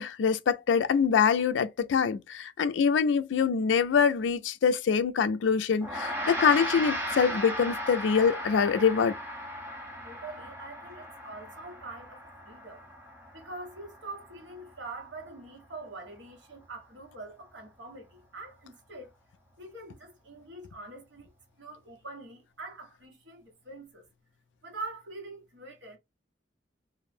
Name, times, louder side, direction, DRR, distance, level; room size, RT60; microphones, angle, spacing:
voice 1, 0.0-9.1, left 6 dB, 80° left, 0.3 m, -25 dB
Gong, 5.8-15.4, equal, 10° right, 0.6 m, -37 dB
voice 2, 10.0-12.9 13.3-19.1 19.6-21.3 21.6-24.0 24.6-26.0, right 2 dB, 85° right, 1.1 m, -44 dB
2.5 x 2.0 x 3.2 m
head